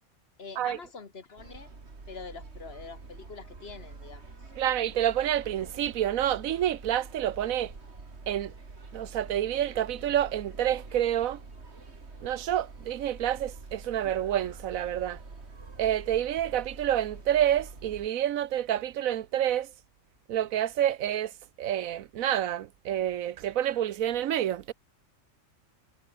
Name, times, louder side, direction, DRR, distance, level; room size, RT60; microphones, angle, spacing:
voice 1, 0.4-1.7 2.1-4.2, left 4 dB, 50° left, 1.8 m, -44 dB
sound 1, 1.4-18.1, right 3 dB, 50° right, 2.8 m, -46 dB
voice 2, 4.6-7.7 8.3-8.5 8.9-11.4 12.2-15.2 15.8-19.7 20.3-21.3 21.6-24.7, right 11 dB, 85° right, 1.2 m, -28 dB
omnidirectional pair, 1.4 m